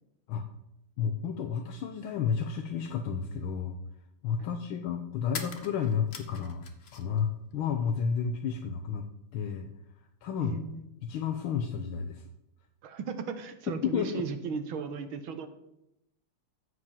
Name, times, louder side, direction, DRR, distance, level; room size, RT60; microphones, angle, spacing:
voice 1, 1.0-3.8 4.2-6.6 6.9-9.1 9.3-9.7 10.2-10.6 11.0-12.3 13.8-14.2, left 7 dB, 75° left, 5 dB, 1.6 m, -31 dB
sound 1, 5.3-7.2 7.5-8.4, left 5 dB, 45° left, 0.8 m, -43 dB
voice 2, 10.4-10.8 12.8-15.5, right 6 dB, 70° right, 9 dB, 1.8 m, -36 dB
14.0 x 5.1 x 7.2 m, 0.84 s
omnidirectional pair, 2.4 m